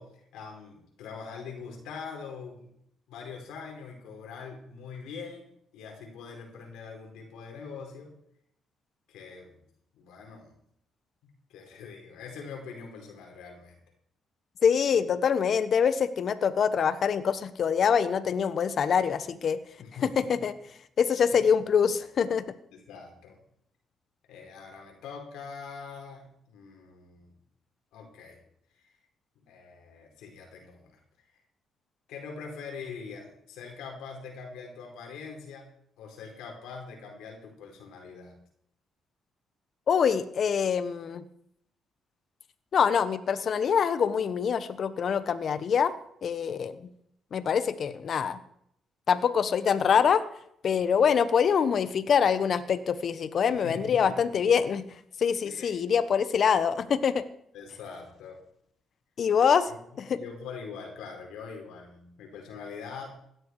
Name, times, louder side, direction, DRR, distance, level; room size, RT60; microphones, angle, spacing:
voice 1, 0.0-2.7 3.1-8.1 9.1-9.6 9.9-10.5 11.2-13.8 19.8-20.4 21.3-21.4 22.7-23.4 24.3-27.3 27.9-28.4 29.3-31.0 32.1-35.7 36.0-38.4 53.6-54.4 55.4-55.7 57.5-58.4 59.7-59.8 60.1-63.2, left 5 dB, 90° left, 2 dB, 4.9 m, -43 dB
voice 2, 14.6-19.6 20.0-20.5 21.0-22.4 39.9-41.2 42.7-45.9 46.2-46.8 47.3-48.4 49.1-50.2 50.6-54.8 55.2-57.2 59.2-59.7 60.0-60.2, left 7 dB, 55° left, 13 dB, 1.2 m, -25 dB
17.0 x 12.5 x 4.9 m, 0.71 s
cardioid pair, 90°, 0 cm